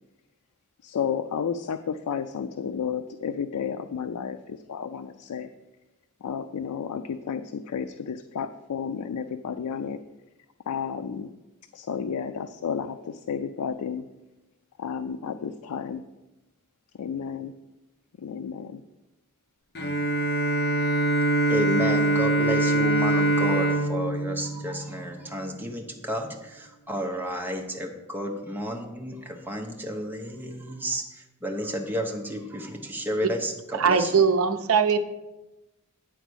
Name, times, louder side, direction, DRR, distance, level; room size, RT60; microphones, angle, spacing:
voice 1, 0.8-5.5 6.2-10.0 10.7-11.3 11.7-14.0 14.8-16.0 17.0-17.5 18.2-18.8, left 7 dB, 85° left, 9 dB, 0.4 m, -32 dB
Bowed string instrument, 19.7-25.4, right 2 dB, 50° left, 1.1 m, -24 dB
voice 2, 21.5-34.1, equal, 10° right, 2 dB, 0.9 m, -32 dB
voice 3, 33.7-35.0, right 6 dB, 65° right, 8 dB, 0.6 m, -21 dB
9.2 x 4.0 x 6.2 m, 1.0 s
head